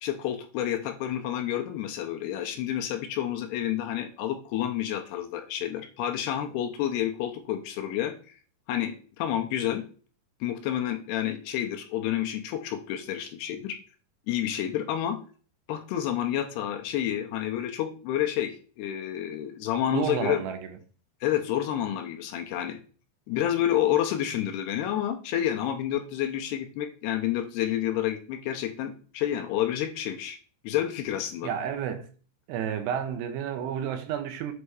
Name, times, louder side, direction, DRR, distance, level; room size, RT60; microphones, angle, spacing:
voice 1, 0.0-8.4 8.7-9.8 10.4-13.8 14.3-15.2 15.7-20.4 21.2-22.8 23.3-30.4 30.6-31.5, left 11 dB, 80° left, 2.6 m, -29 dB
voice 2, 19.9-20.7 31.4-32.1 32.5-34.5, right 8 dB, 80° right, 2.8 m, -31 dB
8.2 x 3.3 x 4.7 m
omnidirectional pair, 5.1 m